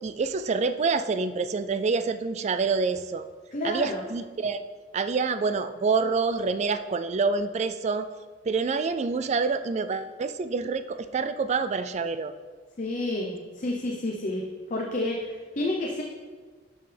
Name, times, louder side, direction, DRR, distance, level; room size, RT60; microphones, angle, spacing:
voice 1, 0.0-3.3 3.6-4.6 4.9-8.1 8.4-12.3, right 4 dB, 35° right, 11 dB, 0.3 m, -27 dB
voice 2, 3.5-4.0 12.8-14.4 14.7-16.0, left 1 dB, 40° left, 0 dB, 0.7 m, -30 dB
11.5 x 5.5 x 3.4 m, 1.5 s
head